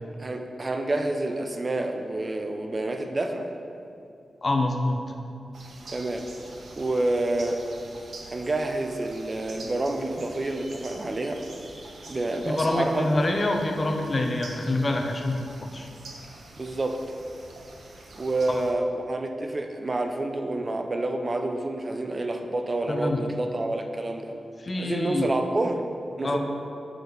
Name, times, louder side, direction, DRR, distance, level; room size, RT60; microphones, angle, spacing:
voice 1, 0.2-3.5 5.9-6.3 6.8-7.6 8.3-11.4 12.1-13.1 16.6-17.0 18.1-24.3 24.8-25.8 26.2-26.4, right 2 dB, 30° right, 4 dB, 0.6 m, -28 dB
voice 2, 4.4-5.0 12.5-15.9 18.5-18.6 22.9-23.2 24.6-25.3 26.2-26.4, left 2 dB, 30° left, 3 dB, 0.7 m, -26 dB
sound 1, 5.5-18.7, right 2 dB, 70° right, 1.0 m, -46 dB
6.6 x 6.3 x 5.2 m, 2.6 s
wide cardioid pair, 145°, 0 cm